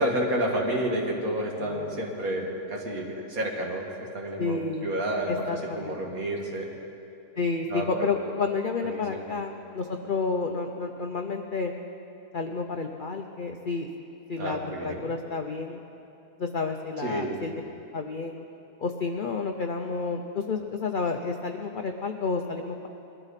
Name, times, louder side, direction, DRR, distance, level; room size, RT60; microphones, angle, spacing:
voice 1, 0.0-3.9 4.1-5.4 5.8-6.7 7.7-8.1 8.8-9.3 14.4-15.1 17.0-17.4, right 1 dB, 60° right, 0 dB, 2.2 m, -30 dB
voice 2, 1.5-2.0 4.4-5.0 5.3-6.2 7.4-11.7 12.3-13.9 14.3-15.8 16.4-17.5 17.9-18.4 18.8-22.9, left 4 dB, 55° left, 4 dB, 0.5 m, -30 dB
21.5 x 13.0 x 4.1 m, 2.8 s
omnidirectional pair, 1.7 m